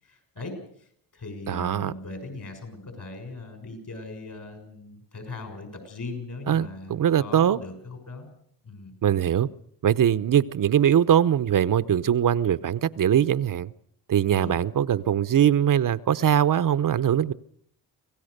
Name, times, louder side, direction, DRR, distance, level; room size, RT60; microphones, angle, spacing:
voice 1, 0.0-8.3 8.6-8.9 14.3-14.6, left 3 dB, 50° left, 6 dB, 6.4 m, -39 dB
voice 2, 1.5-1.9 6.5-7.6 9.0-9.5 9.8-13.7 14.1-17.3, right 9 dB, 55° right, 15 dB, 0.8 m, -22 dB
26.0 x 17.0 x 6.7 m, 0.65 s
cardioid pair, 80°, 40 cm